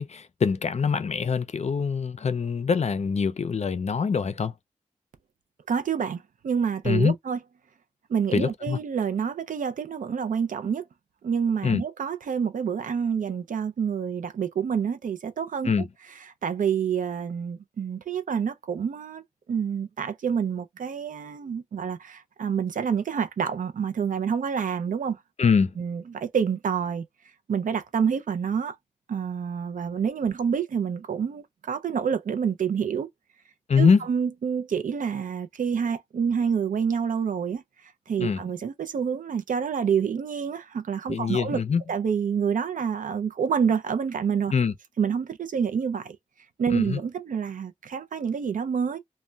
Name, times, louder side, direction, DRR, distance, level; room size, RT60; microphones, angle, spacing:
voice 1, 0.0-4.5 6.8-7.1 8.3-8.8 11.6-11.8 15.6-15.9 25.4-25.7 33.7-34.0 38.2-38.4 41.1-41.8 44.5-44.7 46.7-47.0, left 6 dB, 55° left, 0.4 m, -24 dB
voice 2, 5.7-7.4 8.1-10.9 11.2-15.7 16.4-19.2 19.5-25.2 25.8-27.0 27.5-28.8 29.1-33.1 33.8-37.6 38.1-41.6 41.9-44.5 45.0-46.2 46.6-49.0, right 7 dB, 90° right, 0.4 m, -27 dB
2.2 x 2.1 x 3.7 m
cardioid pair, 55°, 13 cm